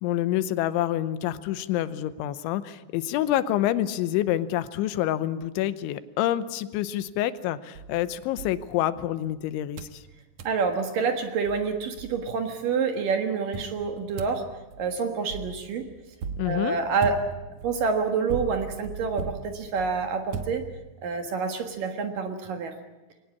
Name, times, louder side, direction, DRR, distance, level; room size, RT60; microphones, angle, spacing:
voice 1, 0.0-10.0 16.4-16.8, left 13 dB, 90° left, 14 dB, 3.3 m, -27 dB
sound 1, 7.7-9.3 9.8-10.0 10.4-10.6 11.1-11.2 11.5-12.6 13.5-21.1, right 5 dB, 80° right, 1.5 m, -39 dB
voice 2, 10.4-14.5 14.8-15.9 16.4-17.2 17.6-20.6 21.0-22.7, right 5 dB, 60° right, 5 dB, 2.7 m, -27 dB
23.0 x 19.0 x 8.4 m, 1.1 s
omnidirectional pair, 5.3 m